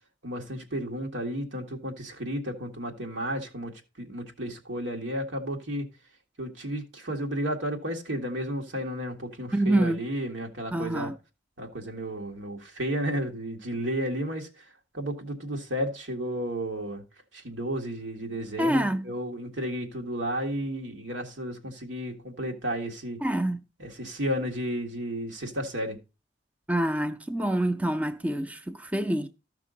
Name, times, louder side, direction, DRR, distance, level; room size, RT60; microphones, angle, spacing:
voice 1, 0.2-5.9 6.4-11.1 11.6-17.0 17.3-23.2 23.8-26.0, equal, 85° right, 1.8 m, -33 dB
voice 2, 9.5-10.0 10.7-11.1 18.6-19.1 23.2-23.6 26.7-29.3, right 1 dB, 10° right, 0.4 m, -26 dB
13.5 x 6.0 x 3.8 m
head